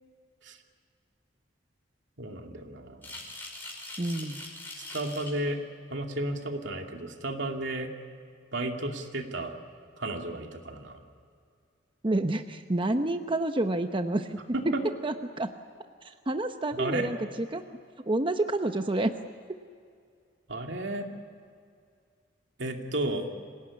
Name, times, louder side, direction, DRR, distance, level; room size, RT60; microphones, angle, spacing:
voice 1, 2.2-3.1 4.8-5.6 5.9-7.9 8.5-9.5 10.0-11.0 14.5-14.8 16.7-17.1 20.5-21.1 22.6-23.2, right 1 dB, 75° right, 3 dB, 2.5 m, -33 dB
sound 1, 3.0-5.4, left 2 dB, 10° left, 5.2 m, -42 dB
voice 2, 4.0-4.4 12.0-14.4 15.0-15.5 16.0-17.6 18.1-19.2, right 2 dB, 30° right, 7 dB, 0.8 m, -29 dB
26.0 x 18.0 x 9.7 m, 2.2 s
head